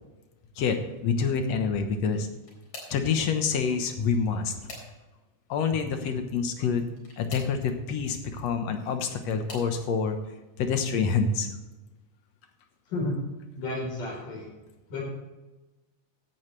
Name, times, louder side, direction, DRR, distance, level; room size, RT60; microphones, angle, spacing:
voice 1, 0.6-2.3 2.9-4.5 5.5-6.9 7.2-10.2 10.6-11.5, left 5 dB, 65° left, 6 dB, 2.1 m, -27 dB
sound 1, 2.0-3.1 4.0-5.3 6.9-7.6 8.7-9.8 10.5-10.9 11.3-11.4 12.7-12.8, left 2 dB, 45° left, 4.8 m, -46 dB
voice 2, 13.6-14.5 14.9-15.0, left 2 dB, 80° left, -4 dB, 5.8 m, -31 dB
16.0 x 10.5 x 3.3 m, 1.1 s
omnidirectional pair, 3.6 m